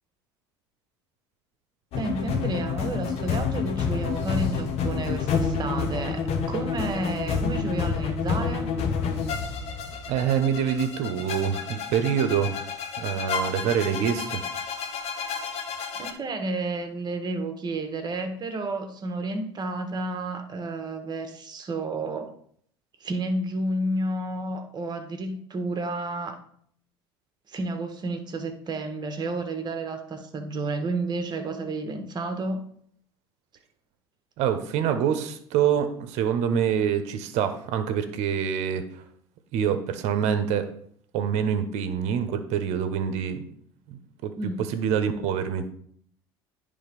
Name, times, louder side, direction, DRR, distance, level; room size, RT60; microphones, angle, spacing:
sound 1, 1.9-16.1, left 6 dB, 55° left, 1.2 m, -29 dB
voice 1, 2.0-8.7 15.9-22.3 23.0-26.4 27.5-32.6 44.3-44.7, right 2 dB, 35° right, 6 dB, 1.4 m, -31 dB
voice 2, 10.1-12.6 13.0-14.4 34.4-38.9 39.5-40.7 41.1-43.4 43.9-45.7, right 8 dB, 60° right, 9 dB, 1.1 m, -26 dB
9.9 x 3.6 x 5.3 m, 0.62 s
hypercardioid pair, 80°, 13 cm